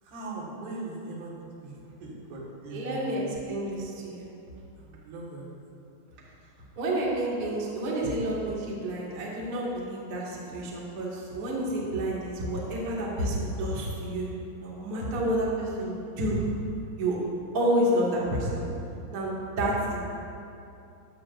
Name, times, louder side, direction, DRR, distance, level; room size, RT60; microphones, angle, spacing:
voice 1, 0.0-3.2 4.8-5.5, right 2 dB, 70° right, -5 dB, 3.9 m, -40 dB
voice 2, 2.7-3.2 3.5-4.3 6.8-14.3 14.6-16.4 17.0-17.2 17.5-18.6 19.1-20.0, right 1 dB, 40° right, -6 dB, 2.2 m, -29 dB
16.0 x 11.0 x 2.6 m, 2.6 s
omnidirectional pair, 5.0 m